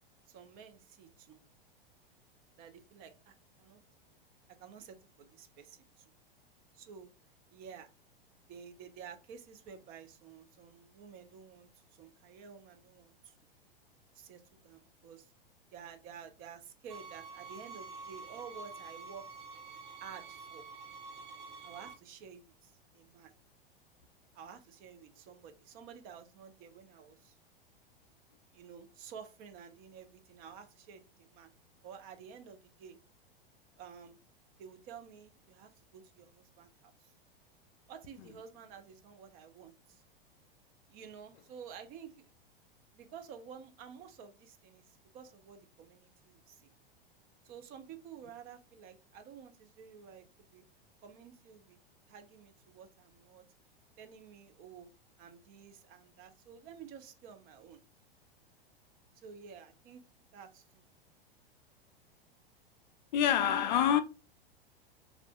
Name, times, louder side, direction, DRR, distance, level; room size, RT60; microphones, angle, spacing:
voice 1, 0.3-1.4 2.6-3.8 4.6-6.1 6.7-7.1 7.5-7.9 8.5-13.3 14.1-15.3 15.7-19.3 20.0-20.6 21.6-23.3 24.3-27.3 28.5-31.0 31.3-31.5 31.8-33.0 33.8-34.2 34.6-37.1 37.9-40.0 40.9-42.3 42.9-46.7 47.4-50.2 50.5-50.6 51.0-51.8 52.1-53.4 54.0-54.9 55.2-57.8 59.2-60.0 60.3-60.8, right 7 dB, 30° right, 0.5 m, -51 dB
sound 1, 16.9-21.9, right 4 dB, 55° right, 1.3 m, -48 dB
voice 2, 63.1-64.0, left 9 dB, 50° left, 0.4 m, -26 dB
3.2 x 2.5 x 3.4 m
figure-of-eight pair, 95°, 29 cm